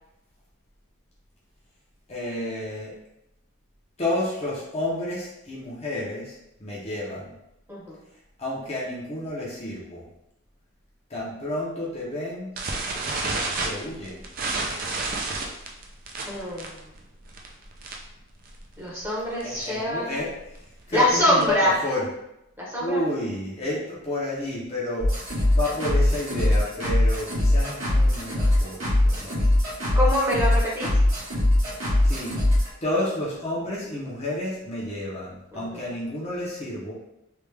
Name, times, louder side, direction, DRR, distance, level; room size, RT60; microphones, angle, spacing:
voice 1, 2.1-2.9 4.0-7.3 8.4-10.0 11.1-12.5 13.6-14.2 19.4-20.3 20.9-22.1 22.8-29.4 32.0-32.3 32.8-36.9, left 1 dB, 30° left, -6 dB, 0.7 m, -30 dB
sound 1, 12.6-18.2 18.5-18.7 19.0-19.1 19.4-19.7 20.2-21.7, right 3 dB, 40° right, 0.4 m, -30 dB
voice 2, 16.3-16.8 18.8-20.1 20.9-21.8 22.6-23.0 29.9-30.9 35.5-35.8, left 1 dB, 10° right, -6 dB, 0.8 m, -24 dB
sound 2, 25.0-32.7, left 1 dB, 70° right, 1.4 m, -21 dB
3.3 x 2.4 x 3.2 m, 0.87 s
head